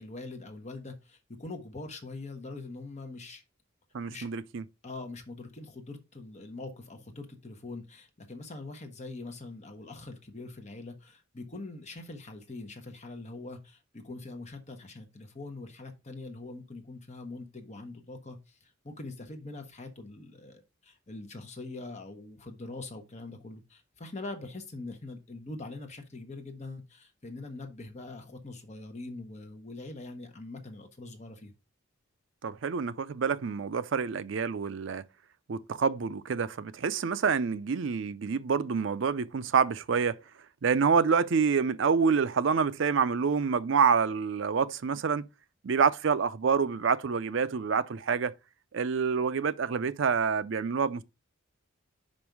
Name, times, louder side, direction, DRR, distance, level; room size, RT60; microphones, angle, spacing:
voice 1, 0.0-3.4 4.1-4.3 4.8-31.5, left 2 dB, 35° left, 1.0 m, -43 dB
voice 2, 3.9-4.6 32.4-35.0 35.5-40.2 40.6-45.3 45.6-48.3 48.7-51.0, right 5 dB, 60° right, 0.4 m, -27 dB
5.3 x 5.2 x 4.6 m
head